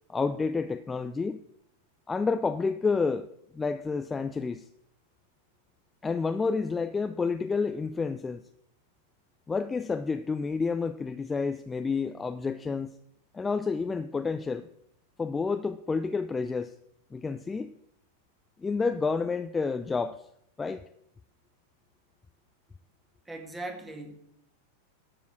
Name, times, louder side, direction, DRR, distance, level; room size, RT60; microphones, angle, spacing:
voice 1, 0.1-1.4 2.1-3.3 3.5-4.6 6.0-8.4 9.5-12.9 13.3-14.7 15.2-16.7 17.1-17.7 18.6-20.2 20.6-20.8, left 4 dB, 15° left, 10 dB, 0.4 m, -29 dB
voice 2, 23.3-24.1, right 2 dB, 10° right, 5 dB, 1.9 m, -39 dB
11.5 x 6.9 x 6.3 m, 0.72 s
figure-of-eight pair, 90°, 0 cm